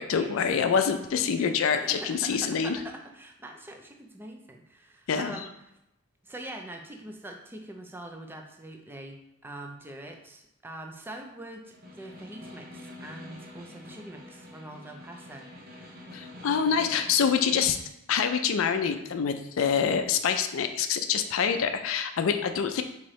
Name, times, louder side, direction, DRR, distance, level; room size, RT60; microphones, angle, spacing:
voice 1, 0.0-2.8 5.1-5.4 16.1-17.8 18.1-22.8, left 7 dB, 65° left, 7 dB, 0.4 m, -26 dB
voice 2, 1.4-5.5 6.2-16.1, right 1 dB, 10° right, 2 dB, 0.5 m, -43 dB
Snare drum, 11.7-17.8, left 1 dB, 45° right, 0.9 m, -46 dB
4.4 x 3.7 x 3.1 m, 0.84 s
head